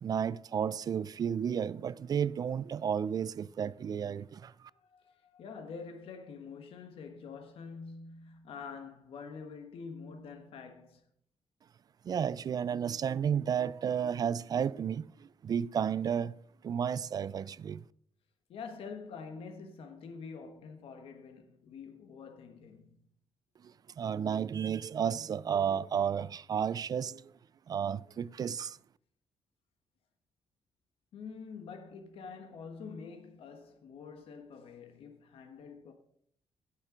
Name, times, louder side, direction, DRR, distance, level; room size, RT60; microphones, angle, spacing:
voice 1, 0.0-4.7 12.0-15.1 15.4-16.3 16.6-17.8 24.0-27.3 27.7-28.8, right 8 dB, 40° right, 0.3 m, -32 dB
voice 2, 4.7-11.0 18.5-23.0 31.1-35.9, left 5 dB, 75° left, 1.4 m, -46 dB
16.5 x 6.6 x 5.1 m
cardioid pair, 145°, 10 cm